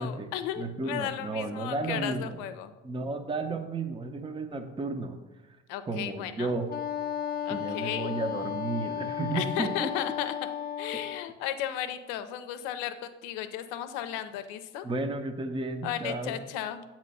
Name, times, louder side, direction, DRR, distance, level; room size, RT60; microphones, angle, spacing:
voice 1, 0.0-2.7 5.7-6.6 7.5-8.1 9.3-10.5 10.8-14.9 15.8-16.8, left 11 dB, 80° left, 10 dB, 0.6 m, -35 dB
voice 2, 0.6-2.4 2.8-5.2 5.9-6.7 7.5-9.9 14.8-16.4, right 3 dB, 15° right, 6 dB, 0.7 m, -33 dB
Wind instrument woodwind instrument, 6.7-11.3, left 9 dB, 30° left, 0.4 m, -34 dB
8.2 x 3.1 x 5.4 m, 1.1 s
hypercardioid pair, 55°, 32 cm